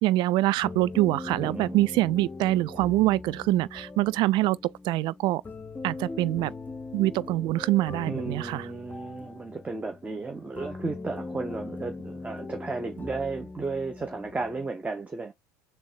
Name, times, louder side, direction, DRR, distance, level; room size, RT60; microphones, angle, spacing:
voice 1, 0.0-4.6 4.8-5.4 5.8-6.5 6.9-8.6, right 17 dB, 55° right, 0.4 m, -24 dB
sound 1, 0.6-14.7, left 3 dB, 20° left, 1.0 m, -40 dB
voice 2, 1.4-1.8 8.0-15.3, right 3 dB, 15° right, 0.9 m, -34 dB
3.7 x 3.1 x 4.6 m
supercardioid pair, 95°, 9 cm